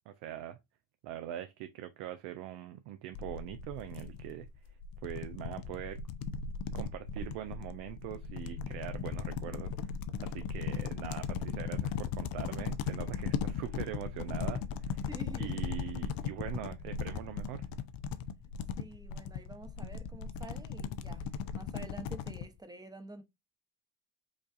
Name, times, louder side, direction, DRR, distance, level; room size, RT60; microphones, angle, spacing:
voice 1, 0.1-0.6 1.0-4.5 5.0-6.0 6.7-9.9 10.2-15.1 15.4-17.7, right 12 dB, 70° right, 0.5 m, -42 dB
sound 1, 3.1-22.5, left 6 dB, 55° left, 0.5 m, -38 dB
voice 2, 15.1-15.7 18.8-23.2, right 2 dB, 10° right, 0.8 m, -49 dB
5.0 x 2.5 x 2.4 m
hypercardioid pair, 60°, 42 cm